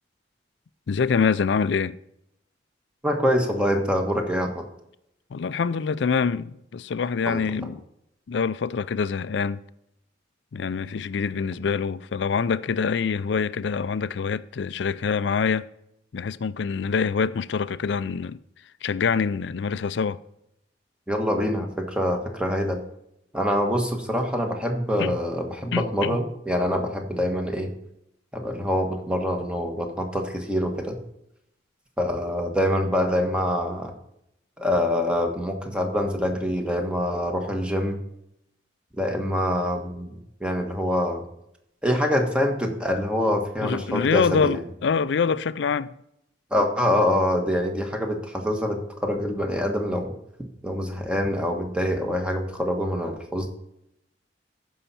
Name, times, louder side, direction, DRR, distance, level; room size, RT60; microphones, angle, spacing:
voice 1, 0.9-2.0 5.3-7.8 8.3-9.6 10.5-15.7 16.1-18.4 18.8-20.2 25.0-25.2 25.7-26.2 43.6-45.9, left 5 dB, 70° left, 0.4 m, -25 dB
voice 2, 3.0-4.6 7.2-7.7 21.1-22.8 23.3-27.7 28.3-31.0 32.0-33.9 34.6-38.0 39.0-41.2 41.8-44.6 46.5-50.1 50.6-53.5, equal, 5° right, 1.3 m, -25 dB
14.5 x 5.6 x 4.2 m
head